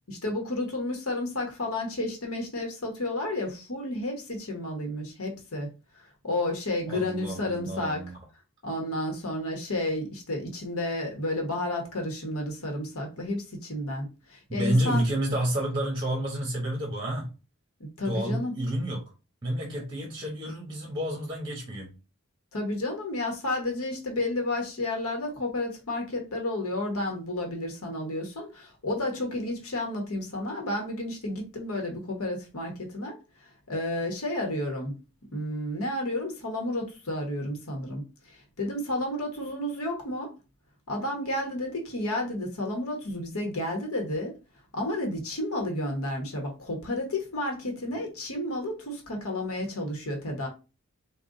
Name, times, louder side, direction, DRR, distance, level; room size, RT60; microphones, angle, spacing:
voice 1, 0.1-5.7 6.2-8.0 8.6-15.0 17.8-18.5 22.5-35.0 35.3-40.3 40.9-44.3 44.7-50.5, left 1 dB, 75° left, 1.1 m, -31 dB
voice 2, 6.9-8.2 14.5-17.3 18.0-19.0 19.4-21.9, right 1 dB, 20° right, 1.1 m, -30 dB
3.8 x 2.3 x 3.7 m
head